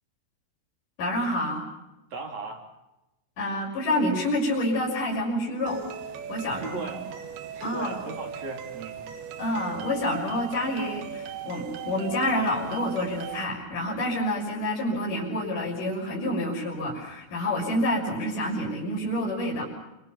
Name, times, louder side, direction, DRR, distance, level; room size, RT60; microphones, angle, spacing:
voice 1, 1.0-1.7 3.4-5.8 6.3-6.9 7.6-8.0 9.4-19.6, left 1 dB, 40° left, -3 dB, 7.3 m, -28 dB
voice 2, 2.1-2.6 6.5-7.0 7.5-9.0, right 3 dB, 35° right, 2 dB, 4.6 m, -37 dB
sound 1, 5.7-13.5, right 9 dB, 65° right, 2.9 m, -38 dB
29.5 x 25.5 x 5.9 m, 0.95 s
omnidirectional pair, 5.8 m